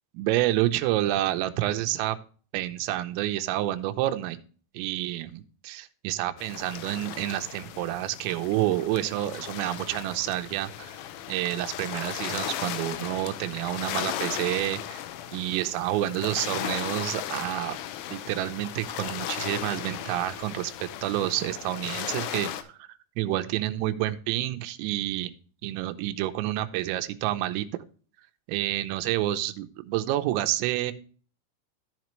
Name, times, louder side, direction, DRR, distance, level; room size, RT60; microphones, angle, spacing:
voice 1, 0.1-2.2 2.5-4.4 4.7-11.0 11.3-15.0 15.3-17.8 18.1-22.9 23.2-25.3 25.6-27.8 28.5-30.9, right 14 dB, 85° right, 8 dB, 3.4 m, -29 dB
sound 1, 6.4-22.6, left 11 dB, 80° left, 3.0 m, -36 dB
14.5 x 5.1 x 3.1 m, 0.41 s
omnidirectional pair, 5.9 m